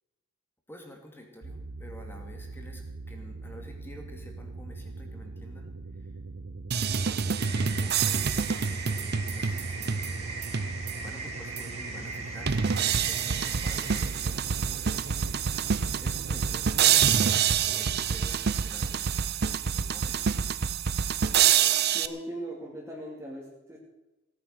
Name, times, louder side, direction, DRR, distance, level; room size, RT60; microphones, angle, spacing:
voice 1, 0.7-6.1 6.9-15.5 16.0-19.2 19.7-20.6, left 1 dB, 10° left, 2 dB, 2.6 m, -49 dB
sound 1, 1.4-17.4, right 2 dB, 85° right, 1.0 m, -42 dB
sound 2, 6.7-11.1 11.6-11.7 12.5-22.1, right 7 dB, 55° right, 0.6 m, -27 dB
sound 3, 7.4-16.2, right 3 dB, 35° right, 4.0 m, -41 dB
voice 2, 21.8-23.8, right 1 dB, 10° right, -5 dB, 2.8 m, -39 dB
17.5 x 9.6 x 6.7 m, 1.0 s
head